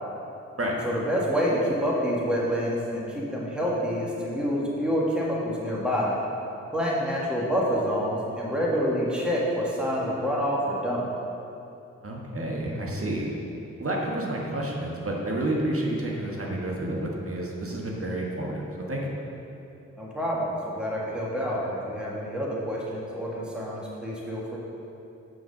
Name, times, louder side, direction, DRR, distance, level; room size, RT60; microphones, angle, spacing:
voice 1, 0.8-6.1 6.7-11.0 20.0-24.6, equal, 5° right, -5 dB, 1.8 m, -27 dB
voice 2, 12.0-13.3 13.8-19.2, right 1 dB, 45° right, -2 dB, 1.5 m, -30 dB
6.3 x 4.9 x 6.4 m, 2.8 s
cardioid pair, 45°, 31 cm